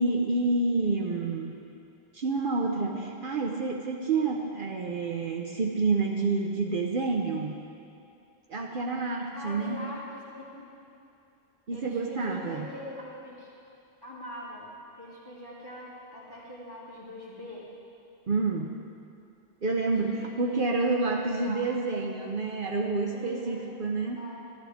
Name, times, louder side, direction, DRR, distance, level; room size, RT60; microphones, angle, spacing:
voice 1, 0.0-1.6 2.1-7.6 8.5-9.9 11.7-12.7 18.3-18.7 19.6-24.3, right 3 dB, 55° right, 1 dB, 0.8 m, -28 dB
voice 2, 9.3-10.8 11.7-13.5 14.0-14.7 15.0-17.7 19.8-20.9 21.2-21.6 23.1-23.7 24.2-24.4, left 1 dB, 20° left, -8 dB, 2.0 m, -43 dB
12.5 x 11.5 x 3.5 m, 2.6 s
omnidirectional pair, 1.1 m